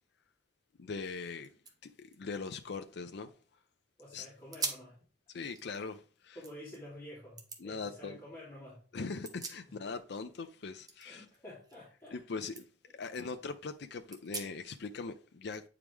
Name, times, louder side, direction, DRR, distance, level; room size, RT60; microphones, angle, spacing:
voice 1, 0.8-1.5 1.8-3.3 4.1-4.3 5.3-6.4 7.6-8.2 8.9-11.3 12.1-12.6 12.9-15.7, left 4 dB, 65° left, 0.5 m, -41 dB
sound 1, 1.0-1.1 1.4-3.6 4.0-4.1 4.5-5.0 5.4-6.8 7.4-7.6 9.0-10.1 10.4-12.2 12.5-12.6 13.1-13.2 14.1-14.8, right 3 dB, 20° right, 1.1 m, -44 dB
voice 2, 4.0-5.0 6.3-8.8 11.0-12.2 12.9-13.0, left 1 dB, 15° left, 3.1 m, -50 dB
8.8 x 4.8 x 3.5 m
head